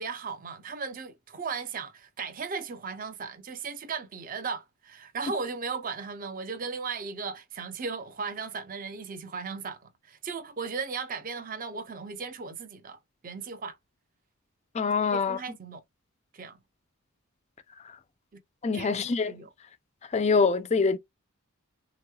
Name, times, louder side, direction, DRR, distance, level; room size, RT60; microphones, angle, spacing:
voice 1, 0.0-13.8 15.1-15.8 16.3-16.6 18.3-18.4 18.7-19.5, right 5 dB, 40° right, 0.5 m, -36 dB
voice 2, 14.7-15.4 18.6-19.3 20.1-21.0, left 4 dB, 30° left, 0.3 m, -24 dB
3.5 x 3.0 x 2.3 m
head